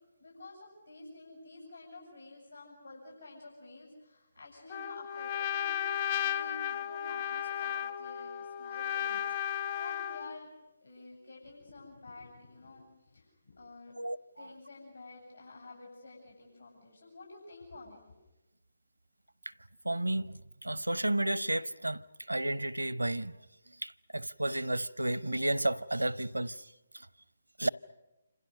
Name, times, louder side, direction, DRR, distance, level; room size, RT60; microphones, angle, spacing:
voice 1, 0.2-5.8 6.1-10.5 10.8-14.0 14.4-18.1, left 2 dB, 80° left, 8.0 m, -51 dB
Trumpet, 4.7-10.4, left 9 dB, 35° left, 0.8 m, -34 dB
voice 2, 14.0-14.5 19.8-22.0 22.3-23.4 23.8-26.7 26.9-27.1 27.6-27.7, right 1 dB, 90° right, 0.8 m, -32 dB
28.5 x 26.5 x 6.5 m
figure-of-eight pair, 140°, 0 cm